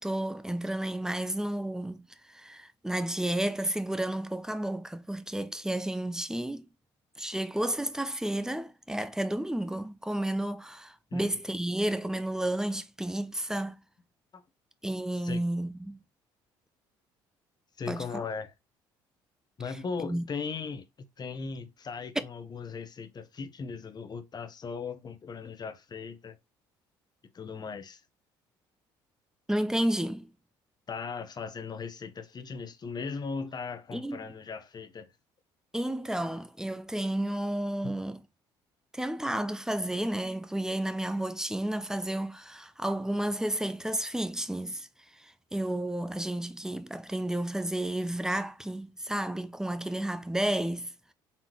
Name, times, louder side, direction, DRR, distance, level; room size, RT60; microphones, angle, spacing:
voice 1, 0.0-6.7 7.2-13.8 14.8-16.0 17.9-18.2 20.0-20.2 29.5-30.3 33.9-34.3 35.7-38.2 38.9-44.9 45.1-51.1, right 1 dB, 5° right, 0.6 m, -32 dB
voice 2, 17.8-18.5 19.6-26.4 27.3-28.0 30.9-35.1 37.8-38.0, left 5 dB, 40° left, 1.0 m, -38 dB
4.1 x 3.6 x 3.0 m
hypercardioid pair, 65°, 11 cm